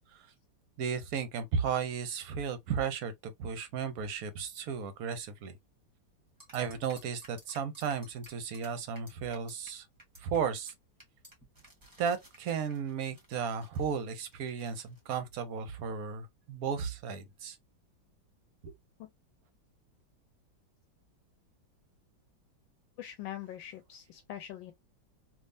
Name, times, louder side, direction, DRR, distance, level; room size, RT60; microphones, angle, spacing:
voice 1, 0.8-5.6 6.5-9.8 10.2-10.7 12.0-17.6, right 6 dB, 60° right, 1.1 m, -34 dB
sound 1, 6.4-9.7 10.0-10.4 10.7-10.8 11.0-15.0, right 1 dB, 10° right, 1.2 m, -56 dB
voice 2, 23.0-24.7, left 12 dB, 85° left, 1.3 m, -43 dB
3.5 x 2.9 x 2.6 m
omnidirectional pair, 2.1 m